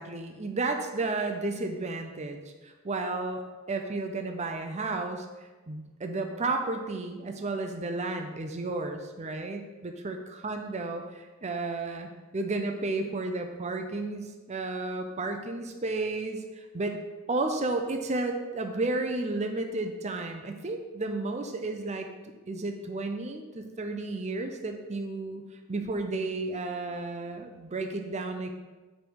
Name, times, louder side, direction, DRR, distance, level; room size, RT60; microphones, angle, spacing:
voice 1, 0.0-3.4 3.7-5.3 5.7-10.2 10.4-17.0 17.3-22.1 22.5-25.4 25.7-28.5, right 2 dB, 35° right, 4 dB, 0.6 m, -32 dB
7.4 x 5.3 x 4.7 m, 1.3 s
head